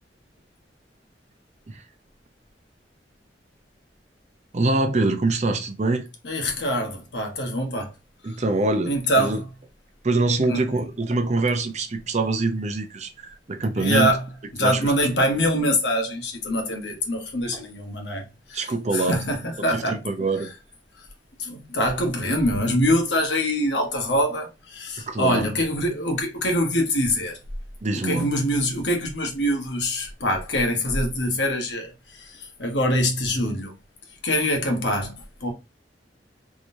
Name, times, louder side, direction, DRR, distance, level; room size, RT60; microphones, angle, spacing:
voice 1, 4.5-6.1 8.2-9.4 10.0-14.1 14.6-14.9 18.5-19.2 19.7-20.5 25.0-25.5 27.8-28.3, right 2 dB, 40° right, 0.6 m, -24 dB
voice 2, 6.2-7.9 8.2-8.4 8.8-9.5 10.5-10.6 13.8-14.3 14.5-20.0 21.4-27.4 28.0-33.7 34.2-35.5, equal, 80° left, 1.2 m, -24 dB
3.7 x 3.0 x 2.6 m
head